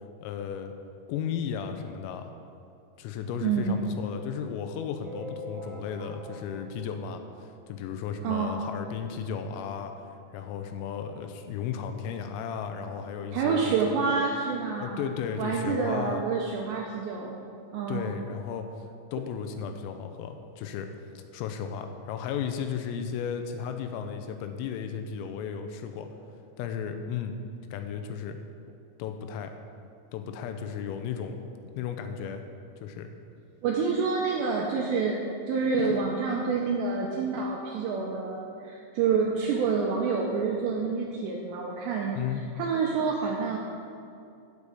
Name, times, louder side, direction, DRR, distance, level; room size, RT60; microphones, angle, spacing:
voice 1, 0.2-0.7 1.1-2.3 3.0-9.9 10.3-13.7 14.8-16.2 17.9-18.7 19.1-20.9 21.3-26.1 26.6-27.4 27.7-28.4 29.0-29.5 30.1-31.4 31.8-32.4 32.8-33.1 42.1-42.4, left 7 dB, 90° left, 6 dB, 3.4 m, -34 dB
voice 2, 3.4-3.9 8.2-8.6 13.3-15.1 15.4-17.4 17.7-18.1 33.6-43.6, right 5 dB, 90° right, -1 dB, 2.5 m, -28 dB
sound 1, 5.0-7.9 8.4-8.5 8.6-8.8 9.1-9.2 10.1-10.2 10.6-10.7, left 1 dB, 55° right, 3.2 m, -44 dB
15.0 x 6.9 x 4.9 m, 2.6 s
omnidirectional pair, 6.0 m